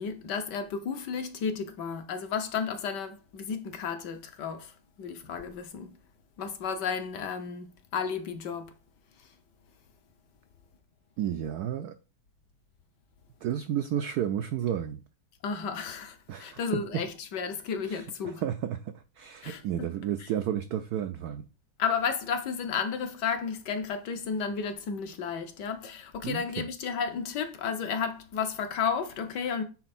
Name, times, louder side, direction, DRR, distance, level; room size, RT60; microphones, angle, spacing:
voice 1, 0.0-4.7 5.0-5.9 6.4-7.6 7.9-8.7 15.4-18.4 19.4-19.9 20.2-20.3 21.8-29.6, left 6 dB, 65° left, 1.3 m, -32 dB
voice 2, 11.2-11.9 13.4-15.0 16.3-16.6 17.9-21.4 26.2-26.7, right 10 dB, 80° right, 0.8 m, -32 dB
8.9 x 4.0 x 4.2 m
omnidirectional pair, 2.2 m